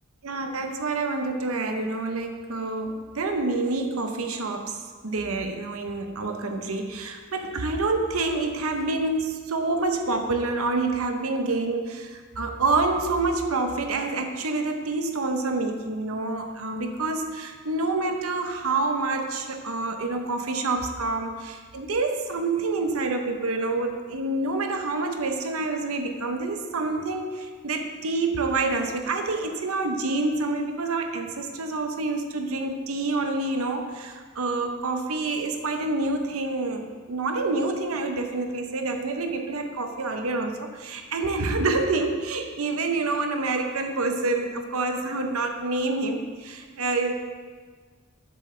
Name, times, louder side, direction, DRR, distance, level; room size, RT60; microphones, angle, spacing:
voice 1, 0.2-47.1, right 3 dB, 75° right, 5 dB, 0.8 m, -27 dB
10.0 x 7.8 x 3.3 m, 1.5 s
head